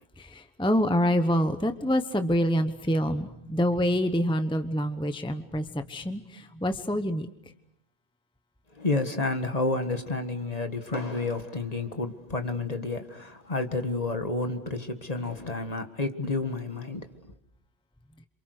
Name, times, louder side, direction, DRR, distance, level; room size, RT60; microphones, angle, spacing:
voice 1, 0.2-7.3, equal, 5° left, 1.0 m, -26 dB
voice 2, 8.7-17.1, left 3 dB, 40° left, 1.9 m, -30 dB
29.0 x 27.0 x 6.7 m
omnidirectional pair, 1.1 m